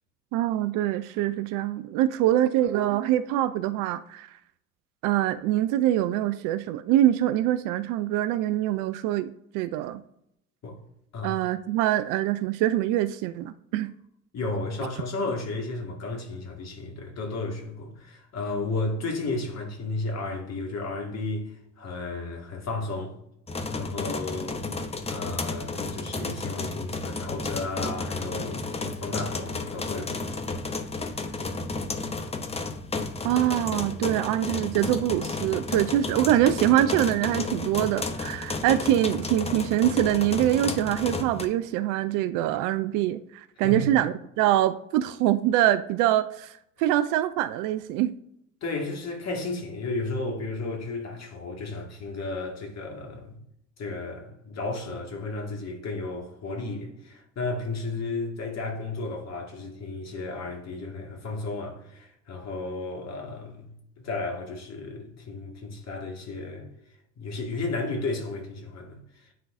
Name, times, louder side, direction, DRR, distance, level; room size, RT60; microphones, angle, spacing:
voice 1, 0.3-4.3 5.0-10.0 11.2-13.9 33.2-48.1, right 13 dB, 50° right, 0.5 m, -24 dB
voice 2, 14.3-23.2 23.7-24.7 25.1-30.4 43.6-43.9 48.6-53.3 53.8-63.7 64.0-66.7 67.2-69.0, left 3 dB, 40° left, 2.0 m, -33 dB
sound 1, 23.5-41.5, left 3 dB, 15° left, 0.7 m, -32 dB
9.5 x 3.8 x 2.6 m
figure-of-eight pair, 60°, 41 cm